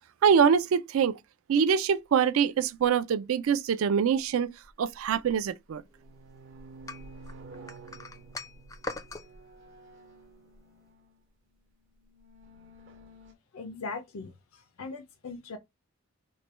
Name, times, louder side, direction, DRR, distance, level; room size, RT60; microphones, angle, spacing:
voice 1, 0.2-1.2 1.5-4.5 4.8-5.8, right 7 dB, 70° right, 0.4 m, -24 dB
sound 1, 2.8-2.9 4.6-5.4 5.7-11.2 12.0-13.3, right 2 dB, 55° right, 0.8 m, -50 dB
sound 2, 6.9-9.3, left 3 dB, 15° left, 0.4 m, -40 dB
voice 2, 13.5-15.6, left 3 dB, 85° left, 0.5 m, -40 dB
3.1 x 2.2 x 4.1 m
head